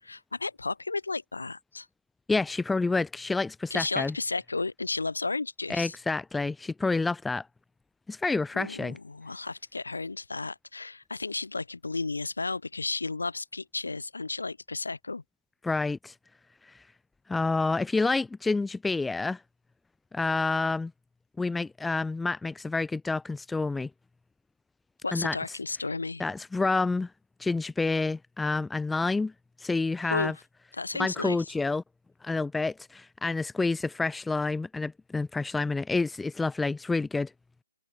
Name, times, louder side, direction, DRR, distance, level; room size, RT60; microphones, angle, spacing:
voice 1, 0.0-1.9 3.7-6.0 8.5-15.2 25.0-26.2 30.1-30.3 30.7-31.4, left 3 dB, 70° left, 6.9 m, -33 dB
voice 2, 2.3-4.1 5.7-7.5 8.1-9.0 15.6-16.1 16.7-16.8 17.3-19.4 20.1-20.9 21.4-23.9 25.1-25.4 26.2-27.1 27.4-29.3 29.6-30.3 31.0-31.8 32.2-37.3, left 3 dB, 5° left, 1.0 m, -28 dB
figure-of-eight pair, 140°, 0 cm